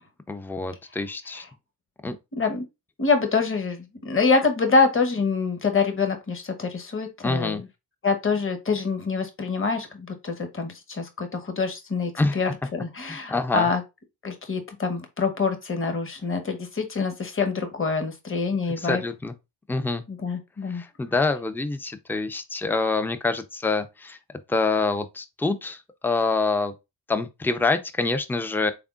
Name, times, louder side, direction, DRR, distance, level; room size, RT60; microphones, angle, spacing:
voice 1, 0.3-1.4 2.0-2.2 7.2-7.6 12.2-12.4 13.0-13.7 18.8-19.3 19.7-20.0 20.7-24.2 24.5-26.7 27.1-28.7, left 3 dB, 5° left, 0.5 m, -26 dB
voice 2, 3.0-7.6 8.0-13.8 14.2-19.0 20.1-20.8, left 4 dB, 30° left, 1.0 m, -25 dB
3.6 x 3.5 x 2.4 m
supercardioid pair, 50°, 42 cm